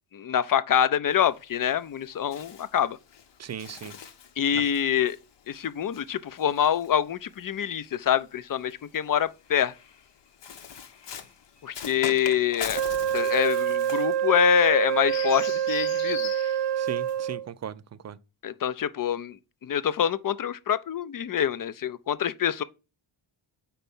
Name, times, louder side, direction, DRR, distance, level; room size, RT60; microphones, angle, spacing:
voice 1, 0.1-3.0 4.4-5.2 5.5-9.7 11.6-12.8 13.1-16.2 18.4-19.4 19.6-22.6, left 9 dB, 45° left, 0.5 m, -25 dB
Bird, 1.1-7.6 8.5-17.3, left 8 dB, 60° left, 0.8 m, -42 dB
voice 2, 3.4-3.9 4.5-4.6 16.8-18.2, right 8 dB, 35° right, 0.4 m, -38 dB
Wind instrument woodwind instrument, 12.7-17.5, right 10 dB, 75° right, 0.8 m, -26 dB
4.5 x 4.0 x 5.4 m
cardioid pair, 75°, 49 cm